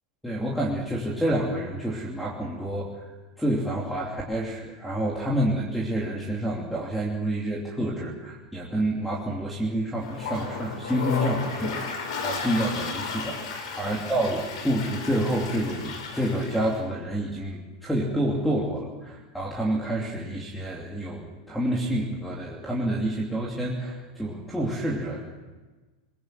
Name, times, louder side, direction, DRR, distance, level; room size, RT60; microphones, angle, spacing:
voice 1, 0.2-3.1 3.4-25.2, right 1 dB, ahead, -2 dB, 2.9 m, -28 dB
Toilet flush, 10.0-16.8, left 4 dB, 70° left, 5.8 m, -34 dB
21.5 x 21.0 x 7.7 m, 1.2 s
supercardioid pair, 150°, 3 cm